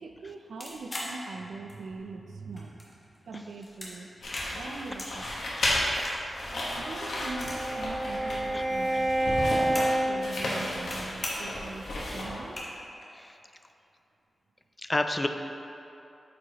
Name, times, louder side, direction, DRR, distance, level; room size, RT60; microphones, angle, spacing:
voice 1, 0.0-2.9 3.3-4.1 4.5-5.3 6.5-11.9 12.1-12.6, right 3 dB, 90° right, 4 dB, 0.4 m, -42 dB
sound 1, 0.6-2.0 2.4-3.2 3.5-5.1 5.4-7.8 8.1-8.2 8.4-10.0 10.4-11.0 11.2-11.6 12.1-12.2 12.4-13.1, left 1 dB, 35° left, 1.2 m, -40 dB
sound 2, 4.2-12.6, left 1 dB, 80° left, 1.2 m, -33 dB
voice 2, 6.0-6.5 8.5-8.6 8.9-9.0 13.1-13.4 14.8-15.3, left 2 dB, 20° left, 6 dB, 0.3 m, -32 dB
Bowed string instrument, 6.6-11.0, right 1 dB, 65° right, 1.3 m, -29 dB
8.3 x 4.6 x 2.9 m, 2.8 s
wide cardioid pair, 115°, 0 cm